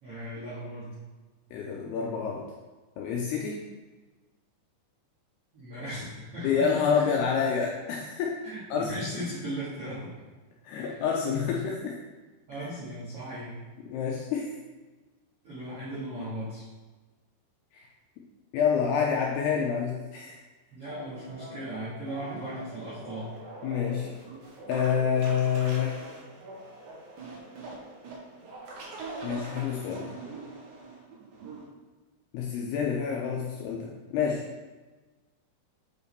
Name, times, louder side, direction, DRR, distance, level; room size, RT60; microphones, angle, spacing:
voice 1, 0.0-0.9 5.5-7.3 8.5-10.1 10.8-11.0 12.5-13.6 15.4-16.6 20.7-23.3, right 1 dB, 70° right, -10 dB, 1.4 m, -37 dB
voice 2, 1.5-2.5 3.0-3.6 6.4-8.3 8.7-9.2 10.6-12.0 13.9-14.5 17.7-17.9 18.5-20.4 23.6-24.1 24.7-26.0 29.2-30.2 32.3-34.4, left 7 dB, 90° left, -2 dB, 2.4 m, -28 dB
sound 1, 20.9-31.6, right 2 dB, 90° right, 1.7 m, -43 dB
8.3 x 4.7 x 3.4 m, 1.3 s
omnidirectional pair, 5.3 m